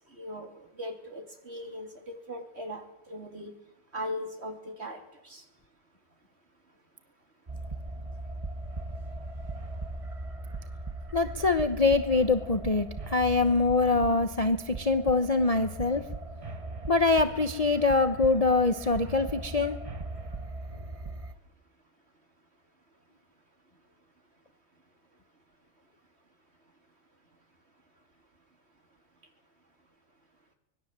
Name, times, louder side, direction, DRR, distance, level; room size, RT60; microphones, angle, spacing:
voice 1, 0.1-3.5 3.9-5.4, equal, 40° right, 4 dB, 3.5 m, -39 dB
sound 1, 7.5-21.3, right 2 dB, 25° right, 1.0 m, -39 dB
voice 2, 11.1-16.0 16.9-19.7, left 3 dB, 30° left, 9 dB, 0.9 m, -24 dB
25.0 x 20.0 x 7.5 m, 0.82 s
omnidirectional pair, 1.7 m